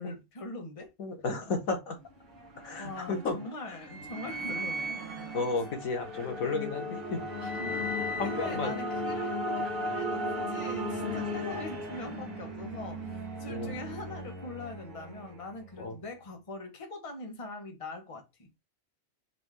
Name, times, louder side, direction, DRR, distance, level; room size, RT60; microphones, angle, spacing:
voice 1, 0.0-0.9 1.3-1.5 2.8-5.4 7.4-7.5 8.2-18.5, left 2 dB, 25° left, 1.1 m, -42 dB
voice 2, 1.0-2.0 2.6-3.4 3.6-3.8 5.3-7.6 8.2-8.7 13.5-13.7 15.8-15.9, left 3 dB, 85° left, 1.5 m, -33 dB
sound 1, 2.0-15.8, equal, 45° right, 1.3 m, -36 dB
4.1 x 2.7 x 4.7 m
omnidirectional pair, 1.4 m